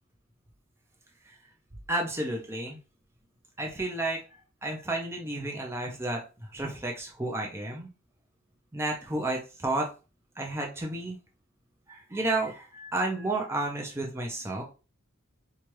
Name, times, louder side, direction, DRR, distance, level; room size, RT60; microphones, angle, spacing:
voice 1, 1.9-2.8 3.6-4.2 4.6-6.2 6.5-7.9 8.7-9.9 10.4-11.2 11.9-14.6, right 2 dB, 10° right, 0 dB, 0.5 m, -31 dB
4.5 x 2.4 x 3.0 m, 0.32 s
head